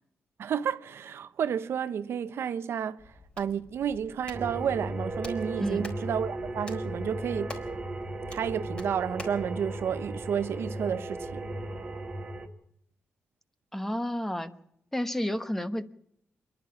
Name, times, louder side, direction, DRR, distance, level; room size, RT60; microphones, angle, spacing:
voice 1, 0.4-7.6 8.3-11.4, right 8 dB, 70° right, 0.9 m, -31 dB
Hands, 3.0-9.5, left 2 dB, 20° left, 4.2 m, -48 dB
sound 1, 4.3-12.5, right 1 dB, 25° right, 2.0 m, -36 dB
voice 2, 13.7-14.5 14.9-15.8, equal, 5° left, 1.1 m, -31 dB
27.0 x 11.5 x 8.5 m
wide cardioid pair, 145°, 4 cm